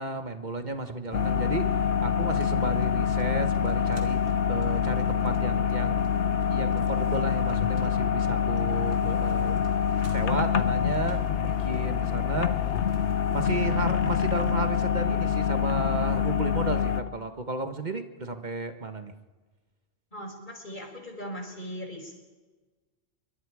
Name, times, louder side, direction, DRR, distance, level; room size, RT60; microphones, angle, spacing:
voice 1, 0.0-6.0 6.5-9.6 10.1-12.8 13.3-19.1, right 2 dB, 35° right, 8 dB, 1.5 m, -33 dB
sound 1, 1.1-17.0, left 7 dB, 65° left, 1.1 m, -26 dB
sound 2, 1.1-14.5, right 2 dB, 70° right, 2.8 m, -45 dB
voice 2, 20.1-22.1, equal, 40° left, 2 dB, 4.9 m, -39 dB
28.0 x 23.0 x 4.9 m, 1.3 s
omnidirectional pair, 1.3 m